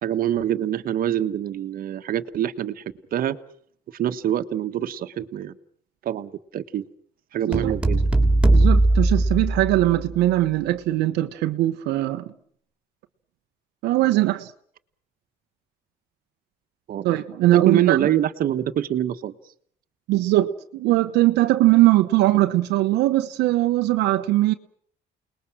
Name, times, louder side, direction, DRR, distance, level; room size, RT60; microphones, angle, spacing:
voice 1, 0.0-2.8 3.1-3.4 3.9-5.5 6.0-6.9 7.3-8.0 16.9-17.1 17.5-19.3, right 11 dB, 60° right, 1.4 m, -25 dB
sound 1, 7.5-10.1, right 2 dB, 5° right, 3.3 m, -19 dB
voice 2, 8.5-12.3 13.8-14.5 17.0-18.1 20.1-24.5, right 16 dB, 85° right, 1.0 m, -20 dB
29.0 x 20.5 x 6.2 m
cardioid pair, 110°, 17 cm